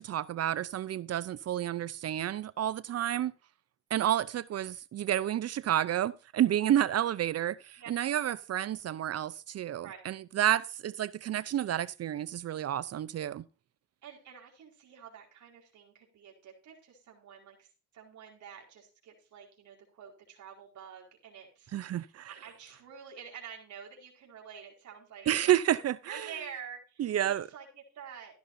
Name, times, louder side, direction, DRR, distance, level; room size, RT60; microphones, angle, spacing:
voice 1, 0.0-3.3 3.9-13.4 21.7-22.3 25.3-26.3 27.0-27.5, right 11 dB, 55° right, 0.6 m, -30 dB
voice 2, 14.0-17.7 17.9-28.3, right 7 dB, 70° right, 4.7 m, -48 dB
15.0 x 11.5 x 2.7 m
cardioid pair, 90°, 30 cm